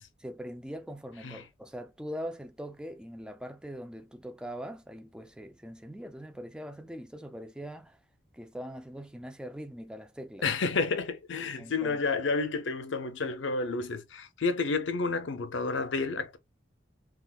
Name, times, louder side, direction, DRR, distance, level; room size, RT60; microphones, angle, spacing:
voice 1, 0.2-8.0 8.3-10.5 11.6-12.0, equal, 5° right, 0.3 m, -42 dB
voice 2, 10.4-16.4, left 4 dB, 80° left, 0.6 m, -30 dB
3.5 x 2.4 x 2.3 m
head